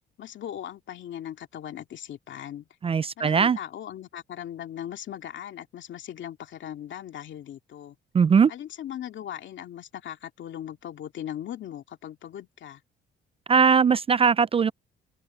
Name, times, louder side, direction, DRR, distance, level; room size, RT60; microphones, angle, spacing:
voice 1, 0.2-2.7 3.2-8.0 8.5-12.8, left 10 dB, 70° left, 2.4 m, -39 dB
voice 2, 2.8-3.6 8.1-8.5 13.5-14.7, right 6 dB, 30° right, 0.4 m, -20 dB
open air
cardioid pair, 90°, 20 cm